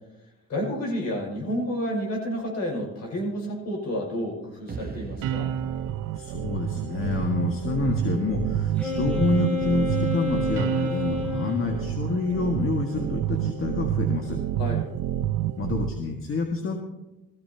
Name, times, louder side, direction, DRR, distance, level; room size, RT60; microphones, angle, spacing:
voice 1, 0.5-5.5 14.6-14.9, equal, 60° left, -1 dB, 6.2 m, -30 dB
sound 1, 4.7-7.9, right 5 dB, 30° right, 1.0 m, -40 dB
sound 2, 5.2-15.9, right 12 dB, 90° right, 0.7 m, -29 dB
voice 2, 6.2-14.4 15.6-16.8, left 3 dB, 45° left, 2 dB, 1.8 m, -27 dB
Wind instrument woodwind instrument, 8.8-11.7, left 2 dB, 5° left, 3.2 m, -29 dB
19.5 x 15.0 x 2.9 m, 0.98 s
cardioid pair, 90°, 30 cm